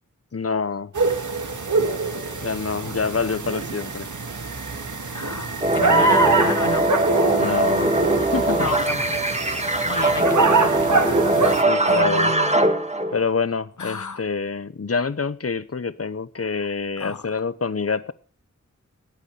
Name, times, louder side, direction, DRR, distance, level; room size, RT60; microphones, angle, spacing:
voice 1, 0.3-0.9 2.4-4.1 7.4-7.9 8.3-8.7 11.6-12.4 13.1-18.1, left 5 dB, 50° left, 1.0 m, -26 dB
sound 1, 0.9-11.6, right 4 dB, 75° right, 1.8 m, -24 dB
voice 2, 5.1-6.9 8.6-9.2 9.5-11.6 11.9-12.6 13.8-14.2 17.0-17.3, left 5 dB, 75° left, 1.2 m, -32 dB
sound 2, 5.6-13.3, right 2 dB, 20° right, 1.8 m, -21 dB
18.5 x 8.3 x 4.9 m
wide cardioid pair, 50°, 30 cm